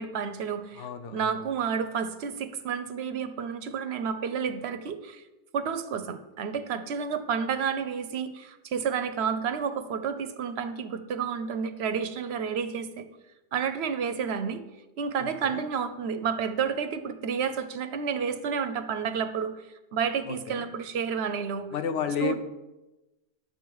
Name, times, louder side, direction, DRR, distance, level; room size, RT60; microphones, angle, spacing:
voice 1, 0.0-5.2 5.5-13.1 13.5-14.6 15.0-19.5 19.9-21.7 22.0-22.3, right 6 dB, 65° right, 10 dB, 0.9 m, -30 dB
voice 2, 0.8-1.4 15.2-15.6 20.3-20.7 21.7-22.4, left 7 dB, 85° left, 9 dB, 1.0 m, -32 dB
9.2 x 6.9 x 4.7 m, 1.0 s
omnidirectional pair, 1.2 m